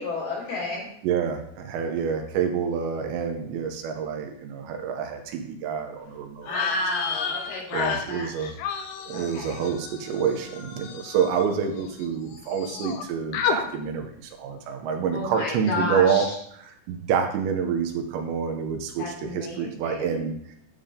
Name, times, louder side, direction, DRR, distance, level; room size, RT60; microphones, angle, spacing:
voice 1, 0.0-0.9 6.4-8.3 9.1-9.6 15.1-16.3 19.0-20.3, left 2 dB, 55° left, -1 dB, 3.0 m, -31 dB
voice 2, 1.0-6.5 7.7-8.6 9.1-16.3 16.5-20.6, right 7 dB, 75° right, 4 dB, 3.0 m, -27 dB
sound 1, 6.4-12.1 12.3-13.0 13.3-13.6, left 6 dB, 80° left, 2.2 m, -32 dB
11.5 x 7.3 x 3.7 m, 0.70 s
omnidirectional pair, 5.3 m